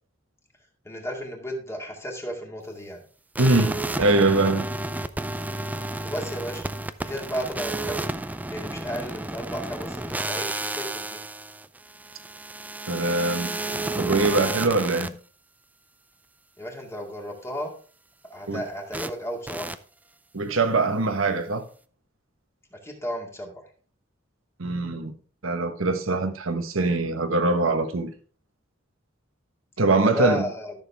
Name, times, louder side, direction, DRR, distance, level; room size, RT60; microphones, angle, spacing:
voice 1, 0.8-3.0 6.0-6.6 7.0-8.0 8.5-11.2 16.6-17.7 18.2-19.8 22.7-23.5 29.9-30.7, equal, 15° left, 2.2 m, -33 dB
sound 1, 3.4-15.1 18.9-19.1 19.5-19.8, right 2 dB, 10° right, 0.4 m, -31 dB
voice 2, 3.4-4.7 12.9-13.6 14.0-15.1 18.5-18.6 20.3-21.6 24.6-25.1 25.4-28.1 29.8-30.4, right 2 dB, 90° right, 1.3 m, -23 dB
13.5 x 6.7 x 3.5 m
head